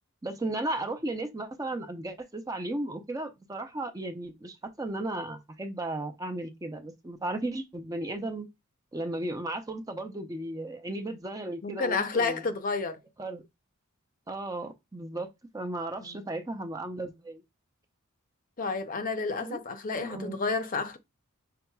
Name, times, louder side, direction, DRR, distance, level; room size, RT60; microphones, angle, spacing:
voice 1, 0.2-8.5 8.9-12.4 13.2-13.4 14.3-17.4 19.4-19.6 20.0-20.4, right 2 dB, 15° right, 0.5 m, -35 dB
voice 2, 11.6-13.0 16.0-16.2 18.6-21.0, left 4 dB, 40° left, 0.6 m, -30 dB
5.8 x 3.8 x 2.3 m
head